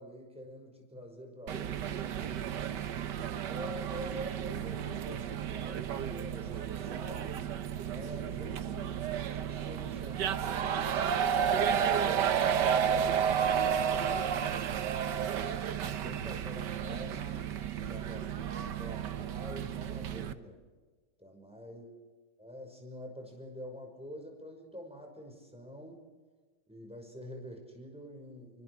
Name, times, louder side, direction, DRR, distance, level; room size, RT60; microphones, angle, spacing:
voice 1, 0.0-2.7 3.5-7.5 7.9-9.0 9.3-10.9 11.4-14.8 15.3-17.5 17.8-20.6 21.2-21.9 22.4-26.0 26.7-28.6, equal, 5° right, 2 dB, 5.9 m, -47 dB
sound 1, 1.5-20.3, right 8 dB, 85° right, 1.7 m, -32 dB
27.0 x 24.5 x 4.9 m, 1.3 s
omnidirectional pair, 1.8 m